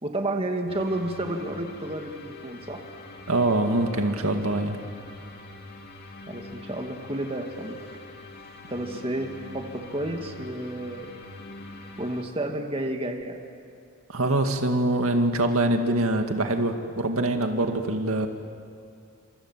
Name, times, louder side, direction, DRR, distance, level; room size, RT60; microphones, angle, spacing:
voice 1, 0.0-2.8 6.3-7.8 8.7-11.1 12.0-13.4, right 1 dB, 25° right, 3 dB, 2.1 m, -31 dB
sound 1, 0.7-12.2, left 2 dB, 50° left, 2.7 m, -43 dB
voice 2, 3.3-4.8 14.1-18.3, right 2 dB, 80° right, 5 dB, 2.1 m, -24 dB
29.0 x 27.0 x 7.5 m, 2.6 s
head